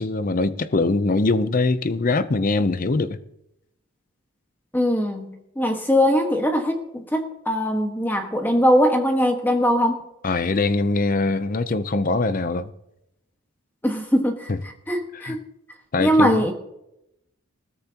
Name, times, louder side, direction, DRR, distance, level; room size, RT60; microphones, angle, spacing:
voice 1, 0.0-3.2 10.2-12.7 14.5-14.6 15.1-15.4 15.9-16.4, left 3 dB, 40° left, 0.6 m, -22 dB
voice 2, 4.7-10.0 13.8-15.4 16.0-16.5, equal, 10° left, 1.4 m, -21 dB
20.5 x 15.0 x 2.9 m
head